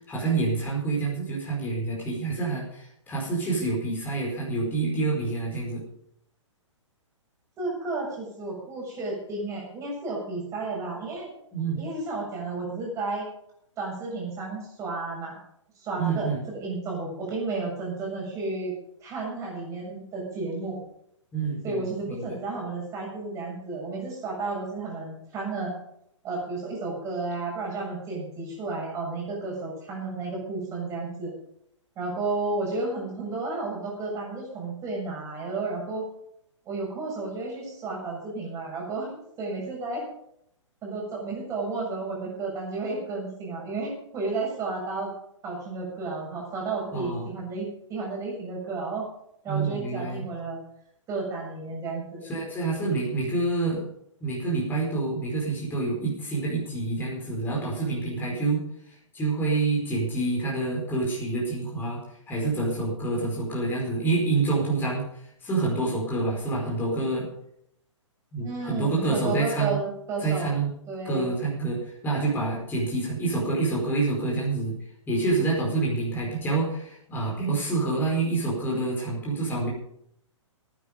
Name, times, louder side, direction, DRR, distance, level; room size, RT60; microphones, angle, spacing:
voice 1, 0.1-5.8 11.5-11.8 16.0-16.4 21.3-22.4 46.9-47.3 49.5-50.2 52.3-53.8 54.2-62.0 62.3-65.0 65.4-67.3 68.3-69.8 70.2-70.7 71.0-74.8 75.1-79.7, right 3 dB, 10° left, -4 dB, 4.9 m, -27 dB
voice 2, 7.6-11.3 11.8-13.3 13.8-15.4 15.8-18.7 19.0-20.8 21.6-25.7 26.2-31.3 32.0-36.1 36.7-40.1 40.8-45.1 45.4-49.1 49.4-50.6 51.1-52.2 68.4-70.5 70.9-71.3, right 3 dB, 20° right, -2 dB, 7.2 m, -32 dB
19.0 x 10.0 x 5.3 m, 0.73 s
figure-of-eight pair, 120°, 16 cm